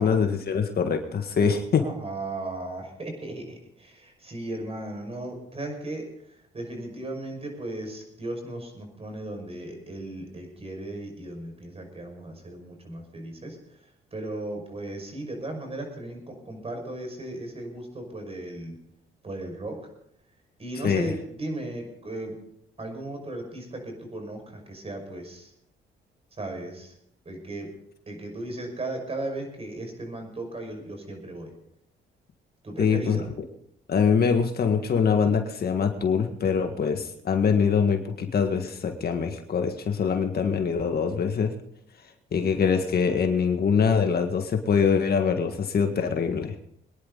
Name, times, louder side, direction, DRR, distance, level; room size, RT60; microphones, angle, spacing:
voice 1, 0.0-1.8 20.8-21.1 32.8-33.2 33.9-41.5 42.3-46.5, left 6 dB, 50° left, 5 dB, 1.8 m, -24 dB
voice 2, 1.8-6.1 6.5-13.6 14.1-18.8 19.2-19.8 20.6-22.3 22.8-25.5 26.4-26.9 27.2-27.7 28.1-31.5 32.6-33.3, right 1 dB, 30° right, 3 dB, 5.9 m, -36 dB
24.0 x 10.5 x 4.0 m, 0.72 s
cardioid pair, 90°, 20 cm